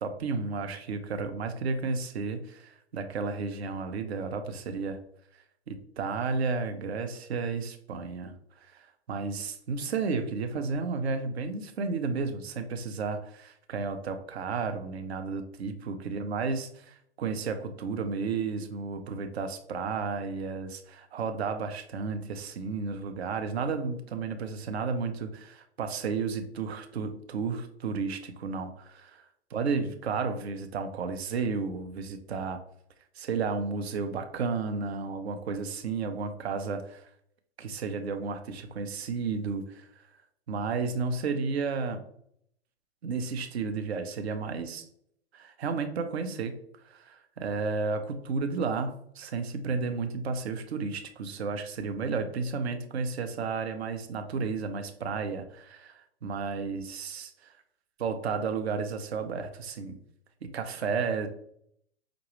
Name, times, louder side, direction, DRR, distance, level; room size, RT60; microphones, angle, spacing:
voice 1, 0.0-5.0 5.7-29.2 29.5-32.6 33.2-37.1 37.6-39.9 40.5-42.0 43.0-44.9 45.3-46.5 46.8-57.3 58.0-60.0 60.4-61.3, right 4 dB, 70° right, 7 dB, 0.6 m, -32 dB
5.0 x 2.2 x 3.0 m, 0.70 s
figure-of-eight pair, 110°, 33 cm